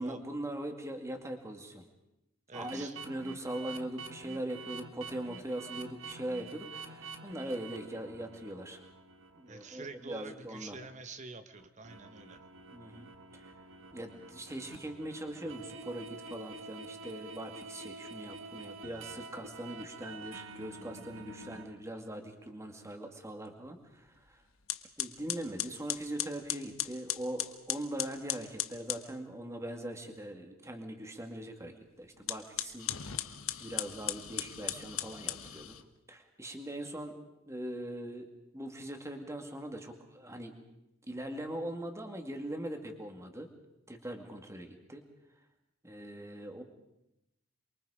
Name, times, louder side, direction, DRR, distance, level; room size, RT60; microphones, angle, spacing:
voice 1, 0.0-1.8 2.5-8.8 9.3-10.8 12.7-13.1 13.3-13.5 13.9-24.4 25.0-33.2 33.6-35.8 36.1-37.2 37.5-38.3 38.5-40.6 41.1-43.5 43.9-45.0 45.8-46.6, right 1 dB, 15° right, 4 dB, 2.3 m, -41 dB
voice 2, 2.5-3.0 9.5-12.4, right 3 dB, 35° right, 9 dB, 1.3 m, -47 dB
sound 1, 2.5-10.4 10.8-10.9 11.5-21.8, right 3 dB, 65° right, 1.6 m, -48 dB
sound 2, 24.1-24.3 24.7-29.1 32.2-35.8, left 13 dB, 75° left, 1.2 m, -37 dB
28.0 x 23.5 x 5.1 m, 0.88 s
head